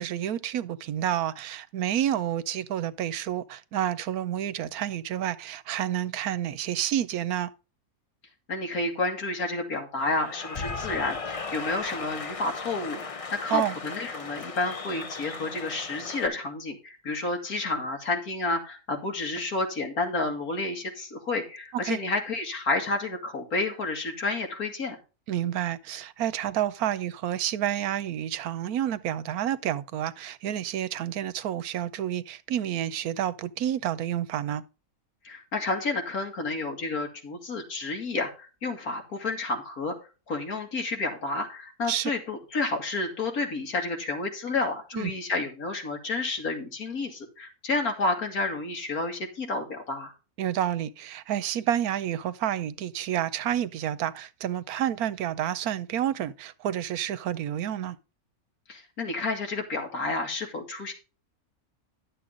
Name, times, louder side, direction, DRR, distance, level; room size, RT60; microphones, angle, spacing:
voice 1, 0.0-7.5 13.5-13.7 21.8-22.0 25.3-34.6 41.9-42.1 44.9-45.1 50.4-58.0, right 11 dB, 85° right, 1.2 m, -29 dB
voice 2, 8.5-25.0 35.2-39.9 40.3-50.1 58.7-60.9, left 3 dB, 80° left, 2.6 m, -30 dB
Cheering / Applause, 10.0-16.3, left 4 dB, 40° left, 0.5 m, -37 dB
11.0 x 7.5 x 3.7 m
omnidirectional pair, 1.5 m